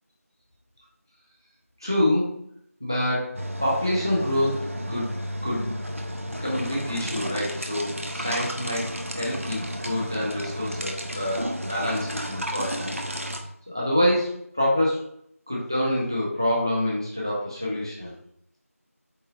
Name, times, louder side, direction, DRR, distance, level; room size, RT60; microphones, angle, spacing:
voice 1, 1.8-2.3 2.8-5.1 5.4-5.8 6.2-13.0 13.7-15.1 15.5-18.1, left 1 dB, 15° right, -5 dB, 1.0 m, -26 dB
sound 1, 3.4-13.4, equal, 60° right, 1.0 m, -32 dB
8.1 x 3.6 x 3.7 m, 0.69 s
figure-of-eight pair, 175°, 8 cm